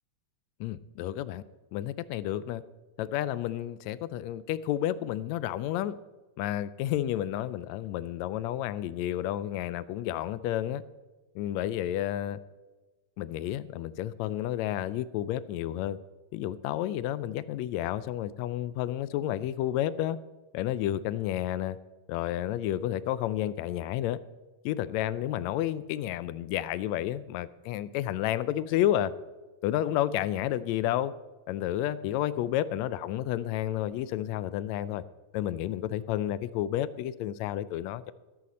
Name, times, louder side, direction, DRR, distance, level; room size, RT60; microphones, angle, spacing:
voice 1, 0.6-1.4 1.7-2.6 3.0-6.0 6.4-10.8 11.4-12.4 13.2-16.0 16.3-20.2 20.5-21.8 22.1-24.2 24.7-29.1 29.6-31.1 31.5-35.0 35.3-38.1, left 12 dB, 80° left, 16 dB, 1.7 m, -31 dB
13.5 x 12.5 x 4.2 m, 1.2 s
omnidirectional pair, 3.3 m